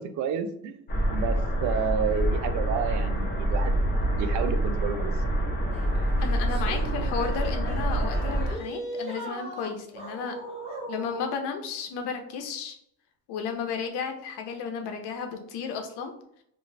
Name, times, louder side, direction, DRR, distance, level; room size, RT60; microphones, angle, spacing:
voice 1, 0.0-3.7 4.1-5.1, right 7 dB, 45° right, 8 dB, 0.4 m, -30 dB
sound 1, 0.9-8.5, right 1 dB, 25° left, 0.8 m, -26 dB
sound 2, 5.7-11.4, right 1 dB, 15° right, 0.9 m, -39 dB
voice 2, 6.2-10.3 10.9-12.7 13.3-16.1, left 6 dB, 60° left, 5 dB, 0.7 m, -33 dB
2.6 x 2.3 x 3.1 m, 0.72 s
cardioid pair, 115°, 45 cm